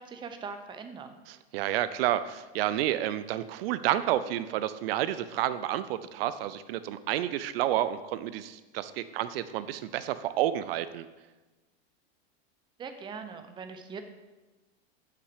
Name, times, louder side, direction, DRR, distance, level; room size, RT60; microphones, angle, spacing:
voice 1, 0.0-1.1 12.8-14.0, right 5 dB, 15° right, 8 dB, 0.5 m, -41 dB
voice 2, 1.3-11.1, right 12 dB, 65° right, 13 dB, 0.5 m, -30 dB
6.4 x 5.8 x 4.9 m, 1.2 s
supercardioid pair, 125°, 31 cm